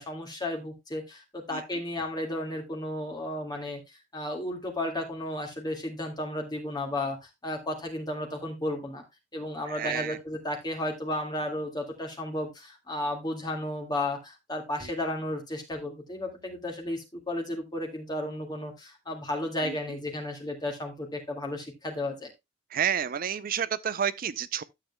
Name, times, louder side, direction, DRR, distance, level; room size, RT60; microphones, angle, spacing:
voice 1, 0.0-9.0 9.3-22.3, left 1 dB, 20° left, 2.0 m, -33 dB
voice 2, 9.7-10.2 19.6-19.7 22.7-24.6, right 8 dB, 50° right, 0.5 m, -30 dB
12.0 x 7.6 x 2.2 m
head